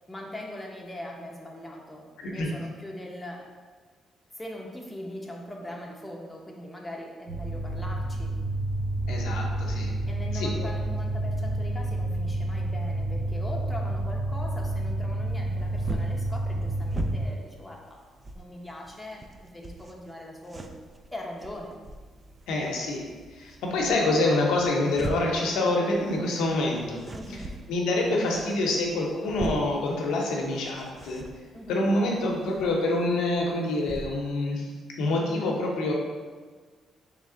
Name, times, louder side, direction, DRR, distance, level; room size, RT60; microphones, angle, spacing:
voice 1, 0.1-3.5 4.4-8.4 10.1-18.0 18.3-20.7 21.1-21.8 27.1-27.6 31.5-31.9, left 1 dB, 10° left, -1 dB, 0.7 m, -41 dB
voice 2, 2.2-2.5 9.1-9.9 10.3-10.7 22.5-23.0 23.4-27.0 27.7-31.2 31.7-34.7 35.0-35.9, left 2 dB, 90° left, -1 dB, 0.7 m, -26 dB
sound 1, 7.3-17.3, right 1 dB, 85° right, 0.8 m, -29 dB
sound 2, 15.3-34.1, right 2 dB, 30° right, 0.3 m, -42 dB
3.2 x 3.2 x 3.7 m, 1.5 s
cardioid pair, 90°, 0 cm